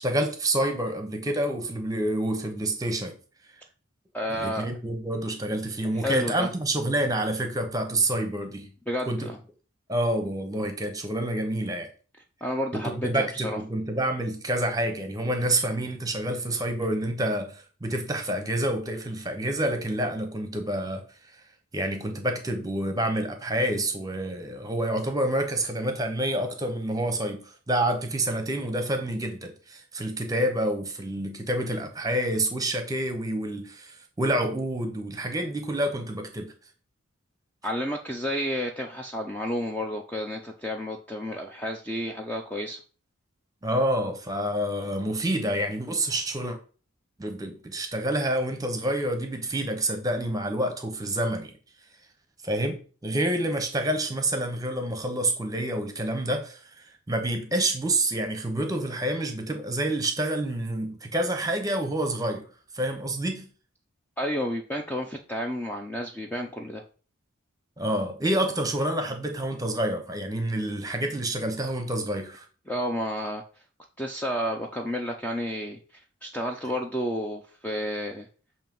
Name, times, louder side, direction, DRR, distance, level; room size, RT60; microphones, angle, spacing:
voice 1, 0.0-3.1 4.4-8.7 9.1-9.3 9.9-11.9 12.7-21.0 21.7-36.5 43.6-46.6 47.2-51.5 52.4-62.5 62.7-63.5 67.8-72.5, right 1 dB, 15° right, 0.9 m, -28 dB
voice 2, 4.1-4.7 5.9-6.5 8.9-9.4 12.4-13.6 37.6-42.8 64.2-66.8 72.7-73.4 74.0-75.8 76.2-78.3, equal, 10° left, 0.5 m, -31 dB
7.2 x 2.8 x 5.4 m
head